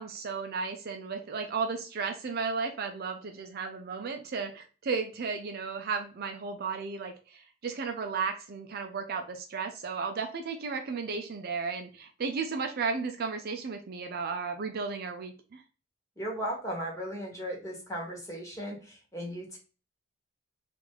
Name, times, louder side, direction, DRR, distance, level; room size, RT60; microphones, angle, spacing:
voice 1, 0.0-15.6, right 5 dB, 45° right, 5 dB, 0.4 m, -34 dB
voice 2, 16.2-19.6, equal, 15° left, -2 dB, 1.3 m, -36 dB
3.1 x 2.5 x 3.8 m, 0.35 s
head